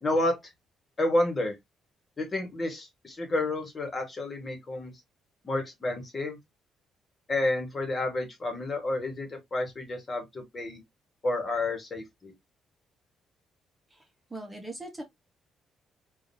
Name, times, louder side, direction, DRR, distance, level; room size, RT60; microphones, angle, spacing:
voice 1, 0.0-0.4 1.0-1.6 2.2-4.9 5.4-6.4 7.3-10.8 11.2-12.3, left 2 dB, 35° left, 1.6 m, -30 dB
voice 2, 13.9-15.0, right 2 dB, 15° right, 1.3 m, -41 dB
3.6 x 2.8 x 2.7 m
cardioid pair, 90°, 0 cm